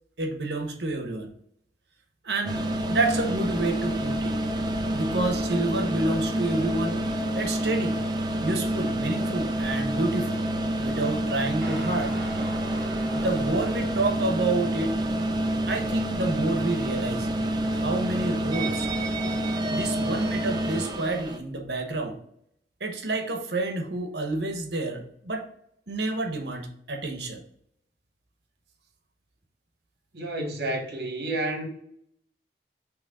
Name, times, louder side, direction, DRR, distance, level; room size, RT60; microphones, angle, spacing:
voice 1, 0.2-1.3 2.2-2.6 2.9-4.4 4.9-7.0 7.3-8.0 8.4-10.4 10.8-12.2 13.1-15.0 15.7-17.3 17.7-18.9 19.7-22.2 22.8-25.5 25.9-27.4, right 2 dB, 75° right, 1.1 m, -29 dB
sound 1, 2.5-21.4, right 1 dB, 25° right, 0.6 m, -28 dB
Guitar, 11.6-20.5, right 1 dB, 5° left, 2.6 m, -44 dB
voice 2, 30.1-31.7, right 1 dB, 60° right, 1.6 m, -30 dB
6.1 x 3.1 x 5.2 m
head